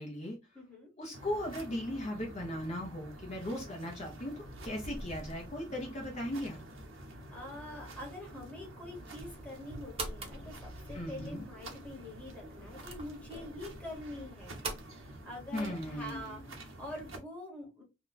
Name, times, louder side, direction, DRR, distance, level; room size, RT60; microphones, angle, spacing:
voice 1, 0.0-0.4 1.0-4.3 4.6-6.6 10.9-11.4 15.5-16.4, left 1 dB, 35° left, -1 dB, 0.8 m, -37 dB
voice 2, 0.5-0.9 7.3-14.6 14.9-17.8, left 1 dB, 5° left, -2 dB, 1.3 m, -45 dB
sound 1, 1.1-17.2, right 1 dB, 90° right, 1.0 m, -48 dB
sound 2, 9.5-14.8, right 3 dB, 30° right, 0.8 m, -45 dB
2.9 x 2.3 x 4.0 m, 0.26 s
head